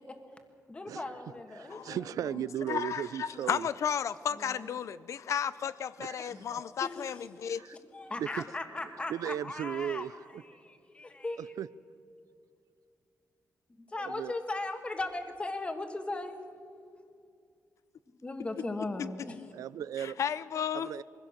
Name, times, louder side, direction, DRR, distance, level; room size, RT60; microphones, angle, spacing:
voice 1, 0.7-2.3 4.3-4.7 6.3-7.3 7.9-10.1 10.4-11.5 13.7-16.4 18.2-19.5, left 2 dB, 20° left, 1.6 m, -38 dB
voice 2, 1.6-3.7 6.0-6.4 7.5-7.8 8.2-8.3 9.1-10.1 11.4-11.7 14.0-14.3 19.5-20.2 20.7-21.0, right 10 dB, 80° right, 0.4 m, -36 dB
voice 3, 2.7-7.6 19.0-19.1 20.0-20.9, left 8 dB, 60° left, 0.5 m, -33 dB
22.5 x 16.0 x 7.3 m
wide cardioid pair, 160°, 6 cm